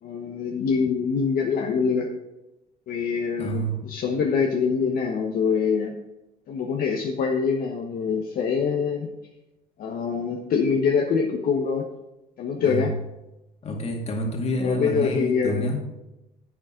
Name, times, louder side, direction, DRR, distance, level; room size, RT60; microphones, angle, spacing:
voice 1, 0.0-2.1 2.9-5.9 6.5-9.1 9.8-11.8 12.4-12.9 14.6-15.8, left 5 dB, 60° left, 1 dB, 1.1 m, -24 dB
voice 2, 3.4-3.8 12.6-12.9 13.6-15.8, equal, 40° left, 2 dB, 2.2 m, -28 dB
11.0 x 8.2 x 3.8 m, 0.98 s
cardioid pair, 110°, 17 cm